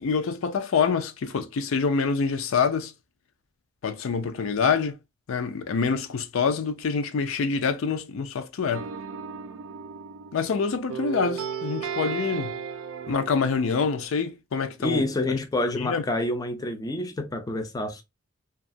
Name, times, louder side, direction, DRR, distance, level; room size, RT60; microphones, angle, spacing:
voice 1, 0.0-2.9 3.8-5.0 5.3-8.9 10.3-12.5 13.1-15.4 15.8-16.0, left 5 dB, 80° left, 0.4 m, -26 dB
sound 1, 8.7-10.6 10.9-14.1, right 7 dB, 80° right, 0.4 m, -35 dB
voice 2, 14.8-18.0, left 1 dB, 20° left, 0.4 m, -28 dB
2.8 x 2.3 x 2.5 m
head